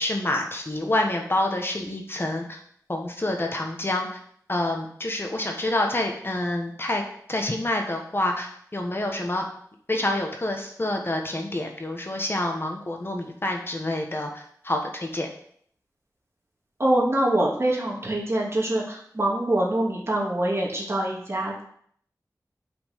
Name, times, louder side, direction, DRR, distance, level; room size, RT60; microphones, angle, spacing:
voice 1, 0.0-2.6 2.9-4.1 4.5-7.0 7.3-9.4 9.9-15.3, left 1 dB, 35° left, 2 dB, 1.3 m, -27 dB
voice 2, 16.8-21.6, right 1 dB, 40° right, -3 dB, 2.6 m, -24 dB
5.8 x 5.7 x 6.6 m, 0.63 s
wide cardioid pair, 80°, 7 cm